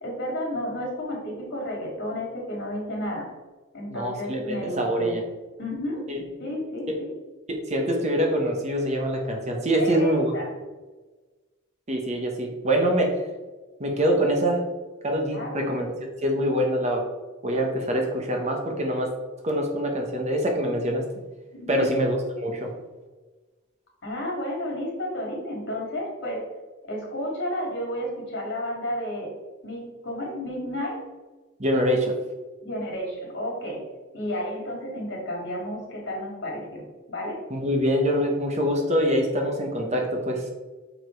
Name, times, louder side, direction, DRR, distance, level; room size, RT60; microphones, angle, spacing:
voice 1, 0.0-3.3 3.7-5.2 5.6-6.0 6.4-7.1 9.8-10.5 15.3-15.8 21.5-21.8 24.0-26.4 26.8-29.3 29.6-31.0 32.6-33.8 34.1-37.5, left 1 dB, 55° left, -1 dB, 2.4 m, -32 dB
voice 2, 3.9-5.2 6.1-6.2 7.5-10.3 11.9-13.1 13.8-14.6 15.0-15.9 16.2-17.0 17.4-19.1 19.4-21.0 21.7-22.7 31.6-32.1 37.5-40.4, equal, 30° right, 2 dB, 1.0 m, -24 dB
6.4 x 5.0 x 4.6 m, 1.2 s
head